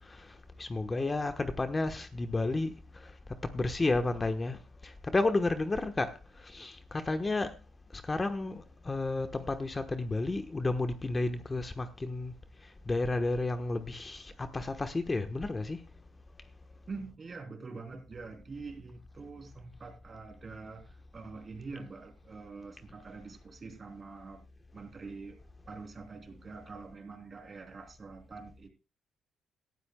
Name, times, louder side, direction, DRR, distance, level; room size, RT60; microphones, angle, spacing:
voice 1, 0.1-2.7 3.0-3.1 3.5-6.1 6.4-7.5 7.9-12.3 12.9-15.8, left 2 dB, 25° left, 1.1 m, -32 dB
voice 2, 16.9-24.5 24.7-25.4 25.6-28.7, right 4 dB, 35° right, 3.2 m, -45 dB
18.0 x 13.0 x 2.2 m
cardioid pair, 90°, 0 cm